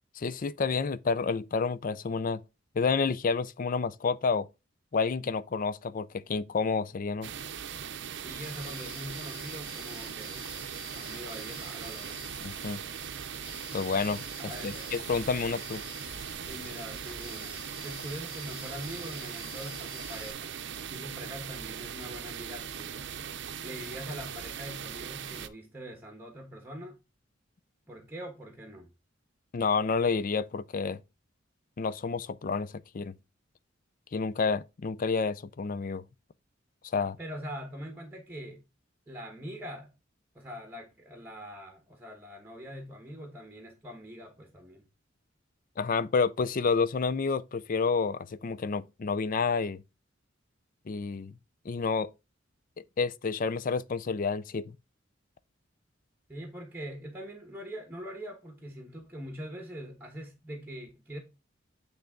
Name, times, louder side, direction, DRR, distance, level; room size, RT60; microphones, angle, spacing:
voice 1, 0.2-2.4 2.8-4.5 4.9-7.3 12.4-12.8 13.7-14.2 14.6-15.8 29.5-31.0 31.8-33.2 34.1-36.0 36.9-37.2 45.8-49.8 50.9-51.3 51.7-52.1 52.8-54.7, left 4 dB, 45° left, 0.4 m, -29 dB
sound 1, 7.2-25.5, right 8 dB, 65° right, 0.6 m, -40 dB
voice 2, 8.2-10.4 10.9-12.2 14.4-15.0 16.4-20.5 20.9-23.1 23.6-27.0 27.9-28.9 37.2-38.6 39.1-39.9 40.3-44.8 56.3-61.2, equal, 10° right, 1.3 m, -43 dB
sound 2, 8.4-20.3, left 6 dB, 30° left, 1.5 m, -49 dB
9.3 x 3.5 x 3.8 m
head